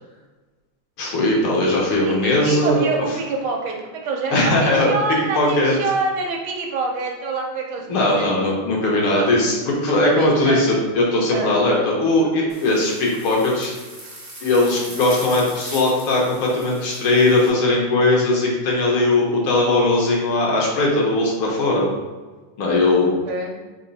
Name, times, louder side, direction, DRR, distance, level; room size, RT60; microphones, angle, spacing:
voice 1, 1.0-2.8 4.3-4.9 5.4-5.7 7.9-13.7 14.4-21.9 22.6-23.1, left 2 dB, 70° left, -3 dB, 1.9 m, -19 dB
voice 2, 2.1-8.3 9.1-9.3 9.9-10.7 11.3-11.5 23.2-23.6, right 4 dB, 75° right, 1 dB, 1.5 m, -26 dB
sound 1, 12.5-17.5, right 1 dB, 15° right, 0.6 m, -39 dB
4.4 x 3.0 x 4.0 m, 1.3 s
omnidirectional pair, 2.4 m